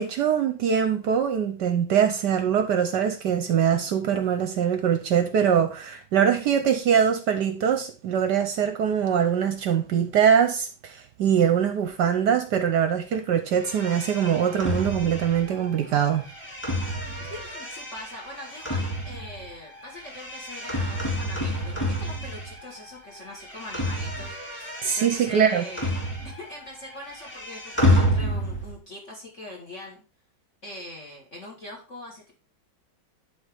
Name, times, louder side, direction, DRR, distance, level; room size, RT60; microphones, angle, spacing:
voice 1, 0.0-16.2 24.8-25.6, right 8 dB, 70° right, 1.1 m, -23 dB
sound 1, 13.6-22.9 23.1-26.6 26.8-28.8, equal, 5° left, 1.7 m, -29 dB
voice 2, 17.2-30.0 30.6-32.3, left 1 dB, 40° left, 1.4 m, -42 dB
11.0 x 4.0 x 3.3 m
omnidirectional pair, 2.3 m